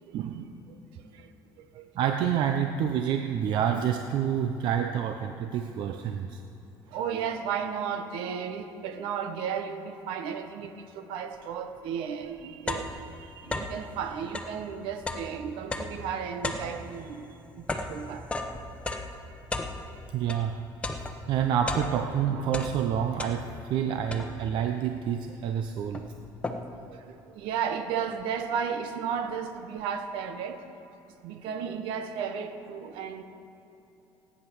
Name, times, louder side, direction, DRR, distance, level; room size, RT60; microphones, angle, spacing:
voice 1, 0.1-0.5 2.0-6.4 20.1-20.6 20.9-26.0, right 8 dB, 65° right, 5 dB, 0.8 m, -28 dB
voice 2, 1.6-1.9 6.9-17.3 17.5-18.3 23.5-23.6 23.8-24.0 26.9-30.6 31.2-33.2, right 7 dB, 80° right, 8 dB, 1.3 m, -34 dB
sound 1, 11.8-11.9 12.2-13.9 14.2-20.5 20.8-22.2 22.5-23.7 24.1-24.6 25.3-25.4 25.6-26.9, left 2 dB, 15° left, 1.1 m, -35 dB
17.0 x 9.8 x 6.3 m, 3.0 s
cardioid pair, 120°, 9 cm